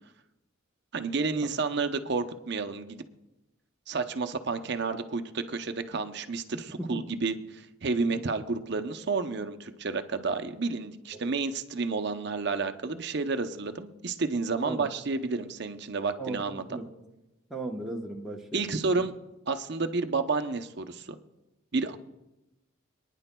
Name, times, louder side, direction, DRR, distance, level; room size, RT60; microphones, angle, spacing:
voice 1, 0.9-3.0 3.9-16.6 18.5-19.1 19.5-21.2 21.7-22.0, right 4 dB, 55° right, 8 dB, 0.7 m, -30 dB
voice 2, 16.2-16.9 17.5-18.8, right 2 dB, ahead, -1 dB, 1.0 m, -37 dB
27.0 x 9.9 x 2.3 m, 0.99 s
head